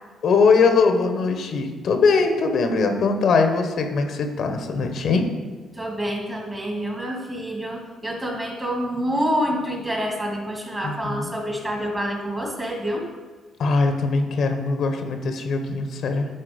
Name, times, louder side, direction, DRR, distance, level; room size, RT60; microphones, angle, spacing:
voice 1, 0.2-5.3 10.8-11.3 13.6-16.3, left 4 dB, 65° left, 5 dB, 1.0 m, -21 dB
voice 2, 5.7-13.0, equal, 15° right, 0 dB, 2.1 m, -27 dB
10.0 x 4.2 x 5.1 m, 1.4 s
cardioid pair, 90°, 0 cm